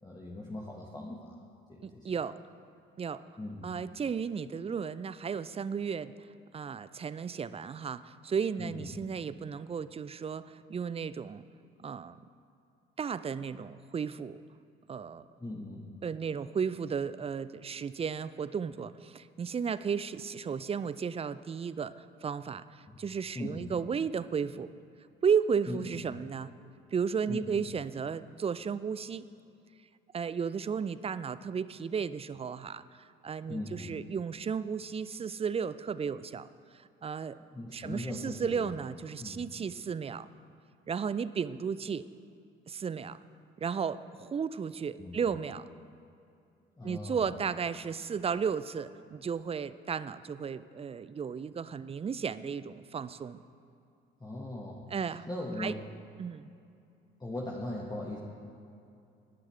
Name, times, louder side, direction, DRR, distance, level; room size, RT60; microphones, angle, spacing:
voice 1, 0.0-1.3 1.7-2.1 3.4-3.7 8.6-9.0 15.4-15.9 22.9-23.0 23.3-23.8 25.7-26.0 27.3-27.6 33.5-33.9 37.5-38.7 39.2-39.5 45.0-45.3 46.8-47.3 54.2-54.9 55.3-55.8 57.2-58.2, left 1 dB, 15° left, -3 dB, 1.7 m, -39 dB
voice 2, 1.8-2.4 3.0-3.2 3.6-6.1 6.5-11.4 11.8-12.2 13.0-14.4 14.9-15.3 16.0-24.7 25.2-26.5 26.9-29.2 30.1-36.5 36.7-37.4 37.7-40.3 40.9-42.1 42.7-43.2 43.6-45.7 46.8-53.4 54.9-55.3 55.6-55.7 56.2-56.5, right 6 dB, 20° right, 15 dB, 0.5 m, -34 dB
21.5 x 11.5 x 3.4 m, 2.6 s
figure-of-eight pair, 50°, 30 cm